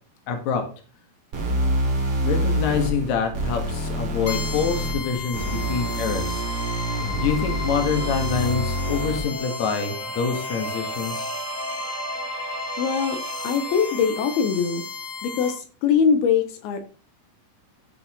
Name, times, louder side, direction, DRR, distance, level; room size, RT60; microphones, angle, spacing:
voice 1, 0.3-0.6 2.2-6.4 7.1-11.3, left 6 dB, 60° left, 4 dB, 2.3 m, -26 dB
sound 1, 1.3-9.3, right 1 dB, 45° right, 2.9 m, -27 dB
sound 2, 4.3-15.5, left 4 dB, 35° left, 2.1 m, -34 dB
sound 3, 7.1-14.8, right 3 dB, 85° right, 3.5 m, -37 dB
voice 2, 12.8-13.2 13.4-14.8 15.2-16.8, left 6 dB, 85° left, 6 dB, 2.7 m, -22 dB
14.0 x 5.3 x 2.9 m, 0.38 s
omnidirectional pair, 4.5 m